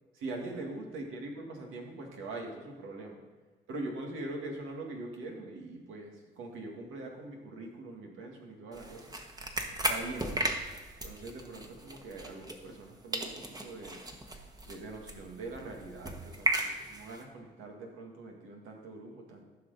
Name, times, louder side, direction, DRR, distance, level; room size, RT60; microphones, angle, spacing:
voice 1, 0.1-3.2 3.7-9.1 9.7-10.3 11.0-14.0 14.7-19.4, right 2 dB, 90° right, 1 dB, 1.8 m, -42 dB
sound 1, 8.7-12.9 13.1-17.2, right 1 dB, 20° right, 1.2 m, -36 dB
14.0 x 6.0 x 4.0 m, 1.4 s
cardioid pair, 90°, 20 cm